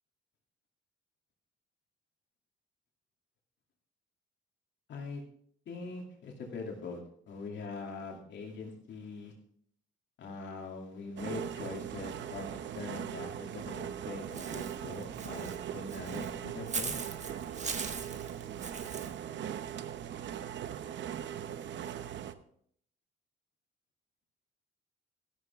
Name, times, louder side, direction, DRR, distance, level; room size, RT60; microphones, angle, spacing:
voice 1, 4.9-5.2 5.7-7.0 7.3-9.3 10.2-12.5 12.7-17.0, left 4 dB, 65° left, 1 dB, 2.6 m, -42 dB
sound 1, 11.2-22.3, right 9 dB, 65° right, 0.8 m, -40 dB
Walk footsteps / Bird, 14.3-19.1, right 5 dB, 35° right, 1.3 m, -40 dB
13.0 x 11.5 x 3.5 m, 0.64 s
cardioid pair, 90°, 20 cm